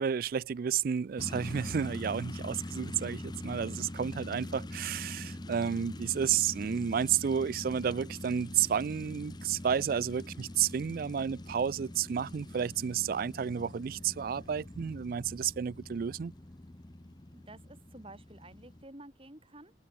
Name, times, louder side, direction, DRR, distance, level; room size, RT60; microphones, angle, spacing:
voice 1, 0.0-16.3, right 8 dB, 50° right, 0.3 m, -31 dB
sound 1, 1.2-18.8, left 1 dB, 25° left, 0.8 m, -43 dB
Animal, 6.2-10.8 11.1-15.0, right 1 dB, 85° right, 6.7 m, -64 dB
voice 2, 17.3-19.7, right 1 dB, 30° right, 5.8 m, -51 dB
head